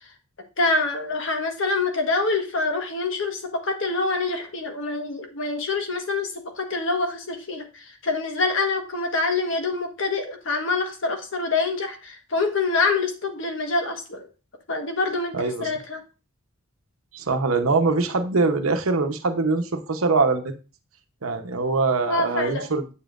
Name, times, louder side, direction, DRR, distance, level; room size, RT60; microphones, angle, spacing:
voice 1, 0.6-14.3 14.7-16.0 22.1-22.7, left 3 dB, 60° left, 5 dB, 1.3 m, -26 dB
voice 2, 15.3-15.7 17.1-20.5 21.2-22.8, right 3 dB, 75° right, 7 dB, 0.9 m, -23 dB
8.5 x 7.1 x 2.5 m, 0.33 s
head